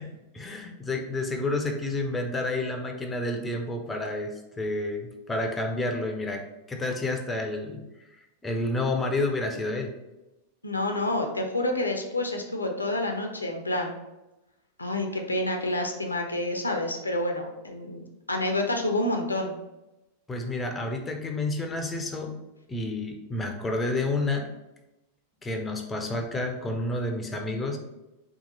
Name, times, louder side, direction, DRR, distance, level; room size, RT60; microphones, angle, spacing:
voice 1, 0.0-9.9 20.3-22.4 22.7-24.5 25.4-27.8, left 2 dB, 15° left, 4 dB, 0.4 m, -30 dB
voice 2, 10.6-13.9 14.8-19.5, left 1 dB, 80° left, 3 dB, 0.4 m, -28 dB
2.8 x 2.3 x 3.9 m, 0.97 s
figure-of-eight pair, 90°, 0 cm